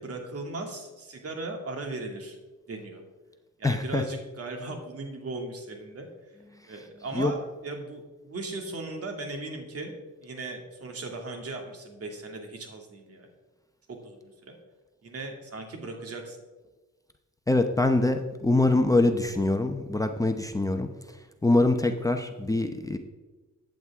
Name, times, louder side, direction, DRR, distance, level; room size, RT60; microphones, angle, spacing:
voice 1, 0.0-2.4 2.7-3.0 3.6-6.1 6.6-13.3 13.9-14.6 15.0-16.4, right 2 dB, 50° right, 3 dB, 2.5 m, -38 dB
voice 2, 3.6-4.0 7.1-7.3 17.5-20.9 21.4-23.0, left 2 dB, 10° left, 5 dB, 0.8 m, -24 dB
14.5 x 9.1 x 3.7 m, 1.2 s
cardioid pair, 90°, 30 cm